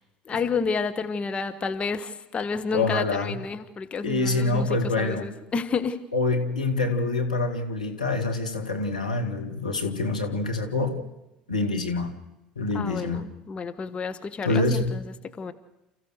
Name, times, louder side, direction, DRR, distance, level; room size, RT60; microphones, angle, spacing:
voice 1, 0.3-4.7 5.0-6.0 12.7-15.0 15.4-15.5, left 5 dB, 30° left, 1.4 m, -30 dB
voice 2, 2.7-3.4 4.0-5.4 6.1-11.0 11.5-12.1 12.6-13.2 14.4-15.0, left 3 dB, 90° left, 2.1 m, -26 dB
29.5 x 15.0 x 6.5 m
figure-of-eight pair, 70°, 4 cm